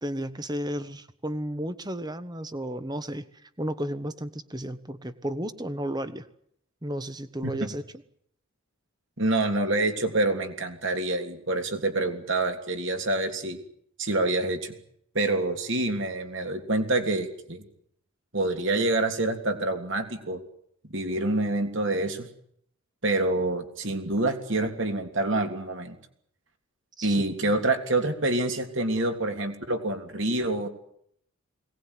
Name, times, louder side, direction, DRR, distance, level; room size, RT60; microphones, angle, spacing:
voice 1, 0.0-3.3 3.6-6.3 6.8-7.8 27.0-27.1, right 1 dB, 20° right, 12 dB, 1.2 m, -33 dB
voice 2, 9.2-13.6 14.0-14.7 15.1-17.6 18.3-20.4 20.9-22.3 23.0-26.0 27.0-30.7, right 2 dB, 55° right, 5 dB, 3.2 m, -27 dB
22.0 x 19.0 x 9.9 m, 0.70 s
head